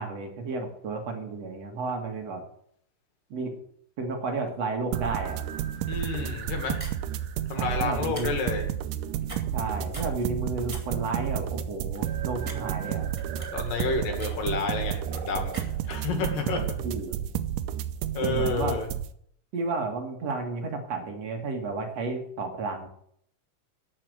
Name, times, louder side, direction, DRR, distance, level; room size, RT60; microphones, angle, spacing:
voice 1, 0.0-2.4 3.3-3.5 4.0-5.4 7.6-8.3 9.5-13.1 16.5-17.2 18.2-18.8 19.5-22.9, right 3 dB, 55° right, 3 dB, 2.8 m, -32 dB
sound 1, 4.9-19.1, right 10 dB, 80° right, 2.3 m, -31 dB
voice 2, 5.9-6.8 7.5-8.6 13.5-15.6 15.9-16.6 18.1-18.9, left 4 dB, 85° left, 5 dB, 3.8 m, -30 dB
sound 2, 6.3-6.4 6.8-7.1 8.0-8.3 8.5-8.8 9.2-9.7 9.9-10.2 10.7-10.8 11.3-11.4 11.9-12.1 12.4-12.5 12.8-15.0 15.5-15.9, right 3 dB, 15° right, 1.4 m, -41 dB
12.0 x 6.7 x 7.8 m, 0.64 s
omnidirectional pair, 3.8 m